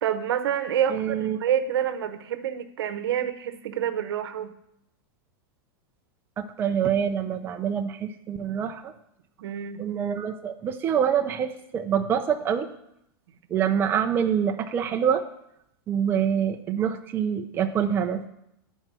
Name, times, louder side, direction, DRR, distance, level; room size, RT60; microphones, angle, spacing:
voice 1, 0.0-4.5 9.4-9.8, right 9 dB, 80° right, 9 dB, 0.8 m, -27 dB
voice 2, 0.9-1.4 6.4-8.9 9.8-12.7 13.5-15.2 15.9-18.2, right 8 dB, 15° right, 5 dB, 0.5 m, -25 dB
10.0 x 4.5 x 6.0 m, 0.78 s
supercardioid pair, 150°, 13 cm